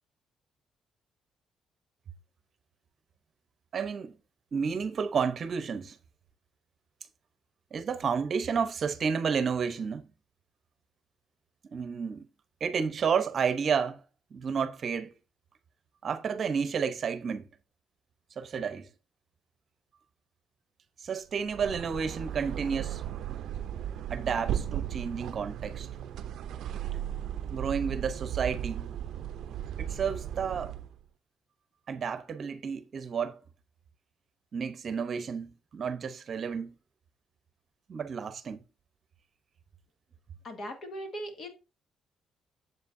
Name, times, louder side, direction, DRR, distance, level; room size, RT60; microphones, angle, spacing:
voice 1, 3.7-4.1 4.5-6.0 7.7-10.1 11.7-12.3 12.6-14.0 14.3-15.1 16.0-17.5 18.4-18.9 21.0-23.0 23.3-23.4 24.1-25.9 27.5-28.9 29.8-30.7 31.9-33.4 34.5-36.7 37.9-38.6, right 6 dB, 50° right, 0.8 m, -31 dB
sound 1, 21.4-31.0, right 10 dB, 75° right, 0.5 m, -36 dB
voice 2, 40.4-41.5, equal, 55° left, 2.1 m, -39 dB
8.0 x 7.7 x 2.6 m
cardioid pair, 90°, 0 cm